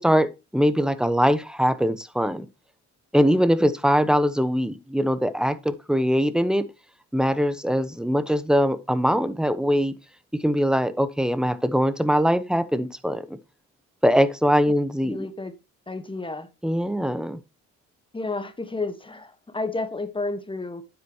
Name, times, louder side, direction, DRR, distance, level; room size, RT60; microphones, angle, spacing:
voice 1, 0.0-2.5 3.1-6.7 7.1-9.9 10.4-13.4 14.0-15.2 16.6-17.4, equal, ahead, 1.0 m, -22 dB
voice 2, 15.0-15.5 15.9-16.5 18.1-20.8, left 3 dB, 15° left, 1.3 m, -31 dB
9.2 x 8.1 x 2.9 m
cardioid pair, 90°, 30 cm